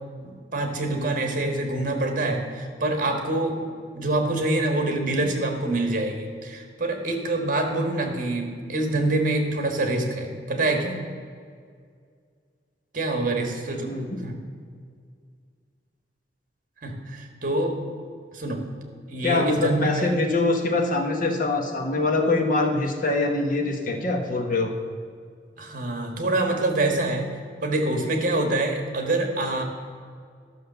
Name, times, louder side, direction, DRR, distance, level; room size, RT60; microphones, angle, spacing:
voice 1, 0.2-3.6 3.9-11.0 12.9-13.9 14.2-14.3 16.8-17.8 18.3-18.6 19.1-20.1 25.6-27.3 27.6-29.6, right 2 dB, 50° right, 4 dB, 1.6 m, -26 dB
voice 2, 13.9-14.2 19.2-24.7, left 2 dB, 50° left, 3 dB, 1.4 m, -24 dB
13.0 x 6.4 x 6.8 m, 2.1 s
head